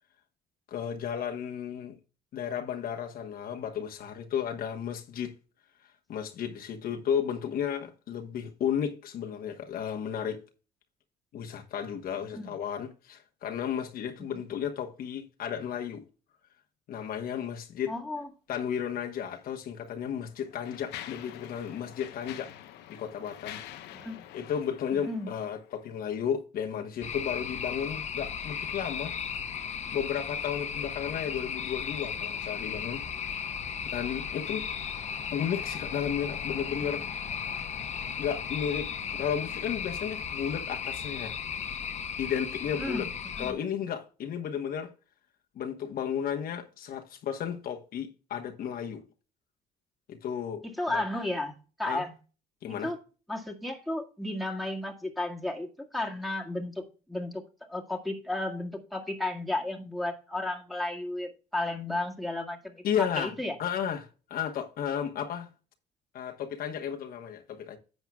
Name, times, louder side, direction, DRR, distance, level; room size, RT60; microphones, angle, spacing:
voice 1, 0.7-2.0 2.3-5.3 6.1-10.4 11.3-16.0 16.9-17.9 18.5-22.5 22.9-23.6 24.3-29.2 29.9-33.0 33.9-34.7 35.3-37.1 38.2-41.3 42.2-43.0 43.4-44.9 45.5-49.0 50.1-51.0 51.9-52.0 52.6-52.9 62.8-63.3 63.6-65.5 66.1-67.8, left 8 dB, 60° left, 1.2 m, -33 dB
voice 2, 17.9-18.3 23.9-24.2 24.9-25.3 42.8-43.1 43.4-43.5 50.6-52.1 52.7-53.0 53.3-57.4 57.7-62.8 63.2-63.5, left 2 dB, ahead, 1.9 m, -33 dB
Mechanisms, 19.3-19.4 20.1-25.9, left 12 dB, 85° left, 0.9 m, -46 dB
sound 1, 27.0-43.5, left 7 dB, 40° left, 1.0 m, -35 dB
10.5 x 7.9 x 2.3 m
cardioid pair, 110°, 17 cm